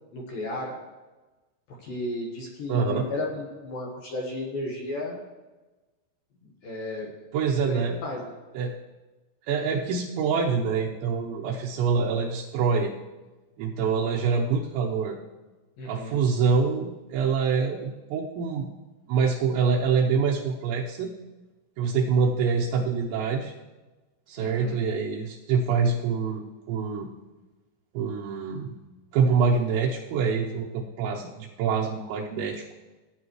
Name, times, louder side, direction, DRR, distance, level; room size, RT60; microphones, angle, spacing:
voice 1, 0.1-0.8 1.7-5.2 6.4-7.1 7.6-8.4 15.8-16.2 24.4-24.7, left 1 dB, 65° left, -2 dB, 2.5 m, -34 dB
voice 2, 2.7-3.1 7.3-8.0 8.5-8.8 9.5-12.9 13.6-15.2 15.9-18.7 19.1-21.1 21.8-23.5 24.3-27.1 27.9-28.8 29.1-32.6, right 5 dB, 80° right, -4 dB, 3.1 m, -25 dB
17.5 x 9.5 x 3.1 m, 1.2 s
omnidirectional pair, 5.3 m